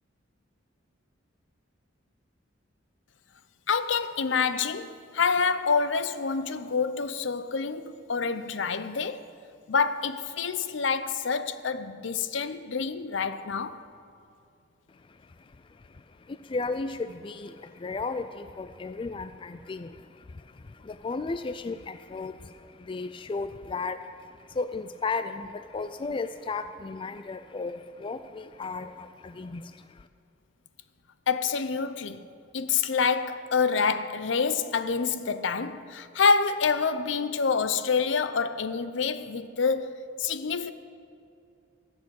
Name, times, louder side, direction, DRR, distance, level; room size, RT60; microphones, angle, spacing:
voice 1, 3.7-9.3 9.7-13.8 31.3-32.2 32.5-40.7, left 5 dB, 70° left, 0.6 m, -27 dB
voice 2, 14.9-30.1, left 3 dB, 25° left, 0.3 m, -35 dB
15.5 x 7.3 x 7.8 m
head